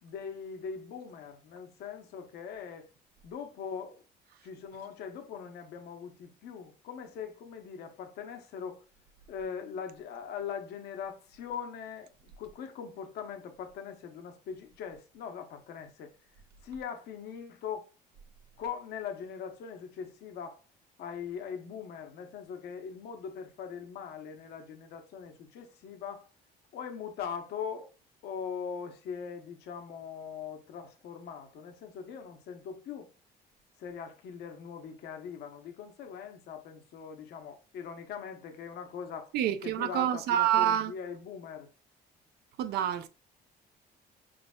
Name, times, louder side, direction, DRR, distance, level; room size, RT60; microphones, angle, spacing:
voice 1, 0.0-2.9 3.2-4.0 4.4-8.8 9.3-16.1 16.6-17.9 18.6-20.6 21.0-26.3 26.7-27.9 28.2-33.1 33.8-39.3 39.6-41.7, left 7 dB, 75° left, 0.8 m, -41 dB
voice 2, 39.3-40.9 42.6-43.1, right 10 dB, 75° right, 0.5 m, -27 dB
5.1 x 3.9 x 2.2 m
cardioid pair, 110°, 17 cm